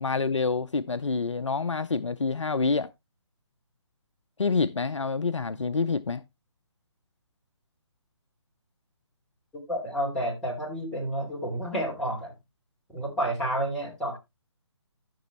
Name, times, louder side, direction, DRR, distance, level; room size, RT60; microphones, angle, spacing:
voice 1, 0.0-2.9 4.4-6.2, left 4 dB, 80° left, 0.5 m, -27 dB
voice 2, 9.7-12.3 12.9-14.2, right 1 dB, 5° left, 3.0 m, -30 dB
14.0 x 6.1 x 3.0 m
figure-of-eight pair, 140°, 15 cm